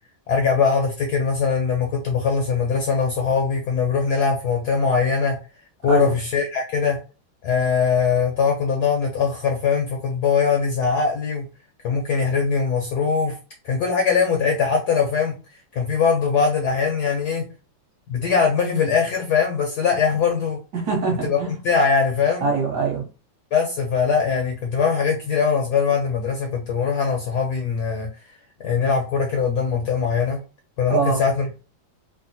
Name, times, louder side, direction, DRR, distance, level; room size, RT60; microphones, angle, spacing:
voice 1, 0.3-5.4 5.8-7.0 7.4-11.5 11.8-13.4 13.6-15.3 15.7-17.4 18.1-20.6 21.2-22.5 23.5-28.1 28.6-30.4 30.8-31.5, left 5 dB, 70° left, 0.9 m, -21 dB
voice 2, 20.7-21.6 22.4-23.0 30.9-31.2, right 4 dB, 60° right, 1.4 m, -23 dB
3.4 x 2.1 x 2.7 m
omnidirectional pair, 2.2 m